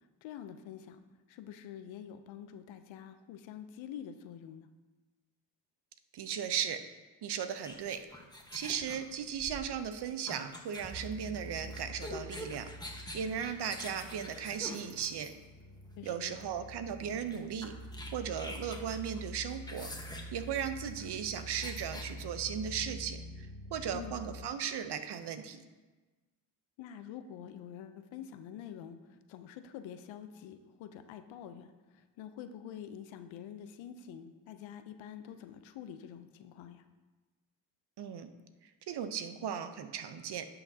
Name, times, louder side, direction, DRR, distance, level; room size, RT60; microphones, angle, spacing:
voice 1, 0.2-1.0 1.3-4.7 16.0-16.3 23.9-24.2 26.8-36.9, left 9 dB, 90° left, 10 dB, 0.6 m, -47 dB
voice 2, 6.1-6.8 7.2-8.0 8.5-12.7 13.1-15.3 16.0-17.7 18.1-19.9 20.3-25.6 38.0-38.3 38.9-40.5, right 8 dB, 60° right, 10 dB, 0.7 m, -37 dB
sound 1, 7.6-15.6 16.4-16.6 16.9-17.0 17.3-22.1, left 1 dB, 10° left, 1.1 m, -46 dB
sound 2, 10.9-24.4, equal, 85° right, 1.1 m, -47 dB
10.5 x 5.8 x 2.7 m, 1.2 s
cardioid pair, 60°, 45 cm